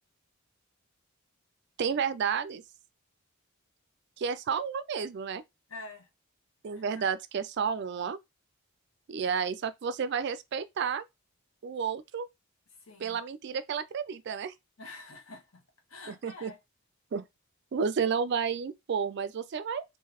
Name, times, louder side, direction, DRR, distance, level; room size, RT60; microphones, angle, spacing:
voice 1, 1.8-2.6 4.2-5.4 6.6-8.2 9.1-11.0 11.6-12.3 13.0-14.5 16.1-16.5 17.1-17.2 17.7-19.8, right 6 dB, 50° right, 0.3 m, -31 dB
voice 2, 5.7-6.1 6.7-7.1 12.8-13.2 14.8-15.6 15.9-16.6, left 2 dB, 75° left, 1.2 m, -47 dB
3.7 x 2.6 x 2.9 m
head